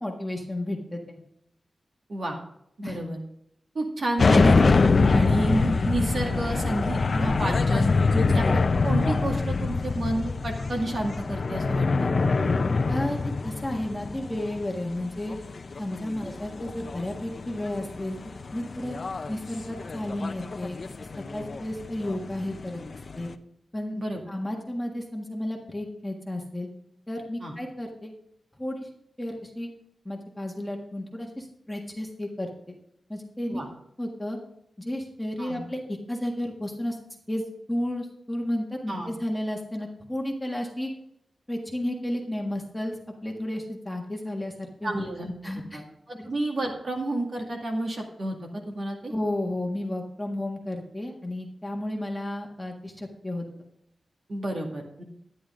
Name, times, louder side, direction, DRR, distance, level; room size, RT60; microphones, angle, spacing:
voice 1, 0.0-1.2 2.8-3.0 8.1-8.4 12.9-13.2 13.4-15.4 15.8-18.2 18.5-19.0 19.3-21.0 21.3-22.8 23.2-23.3 23.7-24.0 24.3-26.7 27.1-28.1 28.6-28.9 29.2-29.7 30.1-32.8 33.1-33.6 34.0-34.4 34.8-35.8 36.1-37.0 37.3-37.4 37.7-40.9 41.5-42.9 43.2-45.0 45.4-45.8 46.1-46.3 49.1-53.5, left 1 dB, 5° left, 0 dB, 1.6 m, -32 dB
voice 2, 2.8-3.2 3.7-7.9 8.3-8.4 8.8-12.1 16.2-16.3 24.0-24.2 27.4-27.5 33.5-33.7 35.4-35.6 38.9-39.1 44.8-45.3 45.7-45.8 46.1-48.4 48.7-49.1 54.3-55.0, right 1 dB, 45° right, 1 dB, 2.1 m, -30 dB
sound 1, 4.2-23.3, left 4 dB, 45° left, 0.6 m, -25 dB
11.5 x 10.0 x 3.7 m, 0.74 s
wide cardioid pair, 160°, 0 cm